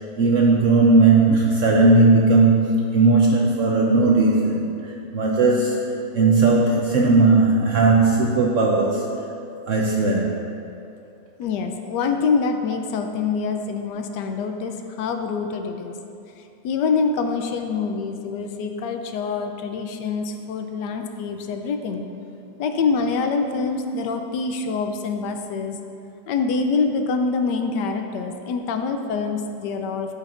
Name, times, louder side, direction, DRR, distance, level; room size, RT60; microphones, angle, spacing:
voice 1, 0.2-5.8 6.1-9.1 9.7-10.3, right 3 dB, 70° right, -1 dB, 0.7 m, -17 dB
voice 2, 11.4-15.9 16.6-22.0 22.6-25.8 26.3-30.1, left 4 dB, 80° left, 5 dB, 1.2 m, -25 dB
13.0 x 5.2 x 2.5 m, 2.7 s
omnidirectional pair, 1.9 m